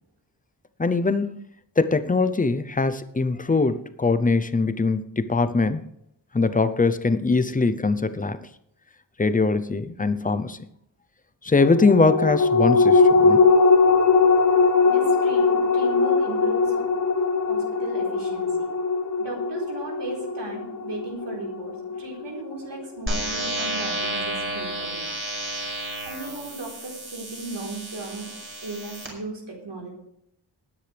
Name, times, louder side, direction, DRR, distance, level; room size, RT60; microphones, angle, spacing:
voice 1, 0.8-1.3 1.8-5.8 6.3-8.4 9.2-10.6 11.4-13.5, left 3 dB, 20° left, 12 dB, 0.6 m, -22 dB
sound 1, 11.6-22.4 22.8-22.9, left 4 dB, 45° left, 1.4 m, -20 dB
voice 2, 14.8-16.9 17.5-18.7 19.2-25.1 26.0-28.3 28.6-29.9, right 2 dB, 70° right, -1 dB, 4.2 m, -36 dB
sound 2, 23.1-29.1, right 1 dB, 30° right, 5.3 m, -31 dB
19.0 x 9.8 x 3.4 m, 0.76 s
wide cardioid pair, 145°, 44 cm